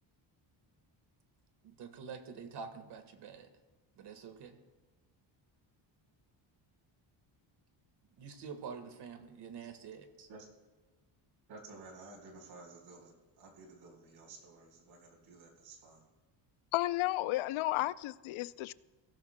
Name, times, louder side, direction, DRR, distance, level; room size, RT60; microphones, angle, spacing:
voice 1, 1.6-3.5 4.0-4.6 8.2-10.3, right 6 dB, 55° right, 1.6 m, -47 dB
voice 2, 11.5-16.0, right 3 dB, 85° right, 4.3 m, -53 dB
voice 3, 16.7-18.7, left 17 dB, 80° left, 0.6 m, -33 dB
23.0 x 16.5 x 2.2 m
cardioid pair, 155°, 48 cm